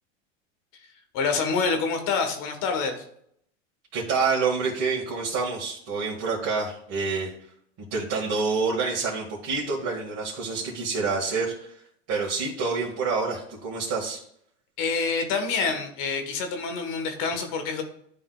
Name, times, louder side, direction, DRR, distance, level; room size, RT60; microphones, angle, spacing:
voice 1, 1.1-3.0 14.8-17.8, left 4 dB, 60° left, 6 dB, 1.4 m, -27 dB
voice 2, 3.9-7.3 7.9-11.8 12.1-14.2, right 4 dB, 45° right, -4 dB, 1.8 m, -27 dB
11.0 x 3.8 x 2.3 m, 0.68 s
supercardioid pair, 105°, 37 cm